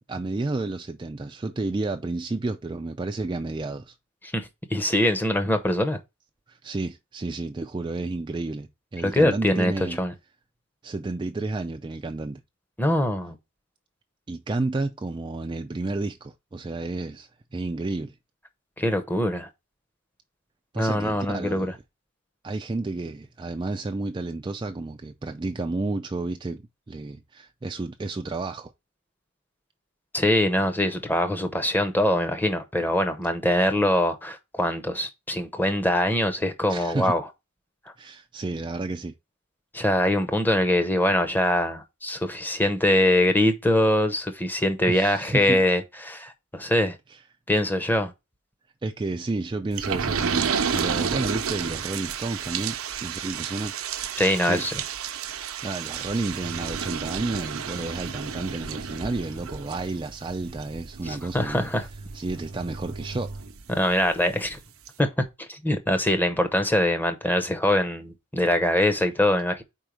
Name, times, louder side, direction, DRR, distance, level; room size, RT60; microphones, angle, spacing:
voice 1, 0.1-3.9 6.5-10.0 10.8-12.4 14.3-18.1 20.7-21.7 22.4-26.6 26.9-28.7 36.7-37.1 38.0-39.1 44.9-45.6 47.1-47.2 48.8-53.7 54.4-54.7 55.1-55.3 55.6-61.7 62.1-63.3, right 2 dB, 20° right, 0.3 m, -31 dB
voice 2, 4.3-6.0 9.0-9.7 10.0-10.1 12.8-13.4 18.8-19.5 20.8-21.7 30.1-37.2 39.7-47.0 47.5-48.1 54.2-54.7 61.1-61.9 63.7-64.6 65.0-69.6, left 1 dB, 10° left, 0.8 m, -23 dB
sound 1, 49.8-64.1 64.5-64.6 64.9-65.0, right 6 dB, 80° right, 0.7 m, -31 dB
4.5 x 4.5 x 5.1 m
head